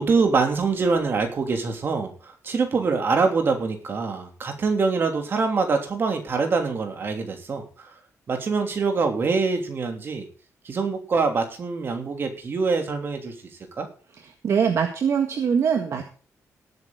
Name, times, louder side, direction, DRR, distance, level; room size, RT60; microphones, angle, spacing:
voice 1, 0.0-7.9 8.3-10.3 10.6-13.3 13.8-13.9, right 4 dB, 40° right, 4 dB, 3.0 m, -24 dB
voice 2, 14.4-16.0, right 7 dB, 55° right, 5 dB, 1.7 m, -22 dB
18.5 x 9.1 x 3.9 m, 0.39 s
wide cardioid pair, 155°, 6 cm